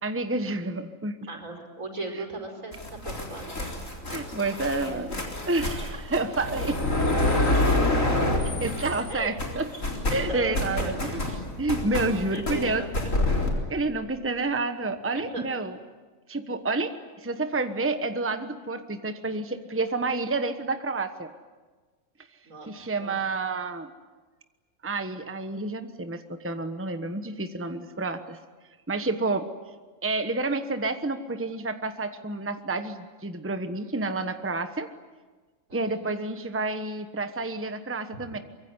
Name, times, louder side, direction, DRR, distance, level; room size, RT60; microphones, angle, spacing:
voice 1, 0.0-1.2 4.1-6.8 8.4-9.7 10.1-11.1 11.6-12.8 13.7-15.8 16.3-21.3 22.7-23.9 24.8-28.4 28.9-29.5 30.0-34.9 35.7-38.4, right 3 dB, 10° right, 8 dB, 1.1 m, -29 dB
voice 2, 1.3-3.7 4.6-5.0 9.1-9.3 10.1-10.9 12.2-13.3 15.1-15.4 22.4-23.2 35.7-36.1 38.1-38.2, right 2 dB, 75° right, 3 dB, 5.2 m, -38 dB
sound 1, 2.7-9.1 9.4-13.5, left 1 dB, 70° left, 4.4 m, -27 dB
24.5 x 23.0 x 9.8 m, 1.3 s
omnidirectional pair, 1.4 m